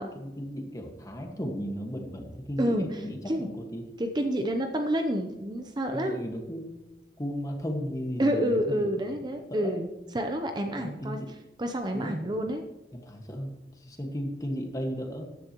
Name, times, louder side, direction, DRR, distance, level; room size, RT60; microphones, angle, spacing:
voice 1, 0.1-3.9 5.9-6.8 7.2-8.9 9.5-9.7 10.8-11.3 11.9-12.3 12.9-13.5 13.9-15.2, equal, 20° left, 3 dB, 1.6 m, -35 dB
voice 2, 2.6-3.5 4.0-6.2 8.2-11.2 11.6-12.6, equal, 25° right, 5 dB, 0.7 m, -29 dB
14.5 x 10.5 x 3.0 m, 1.1 s
head